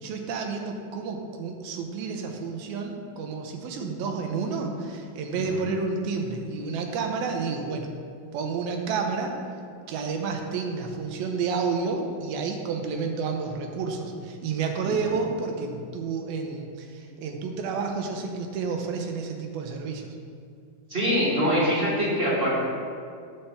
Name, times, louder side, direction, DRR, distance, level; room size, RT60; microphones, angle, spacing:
voice 1, 0.0-7.9 8.3-9.3 9.9-20.2, right 4 dB, 75° right, 3 dB, 2.7 m, -30 dB
voice 2, 20.9-22.6, equal, 15° right, -8 dB, 2.4 m, -24 dB
9.9 x 5.4 x 7.0 m, 2.3 s
omnidirectional pair, 4.6 m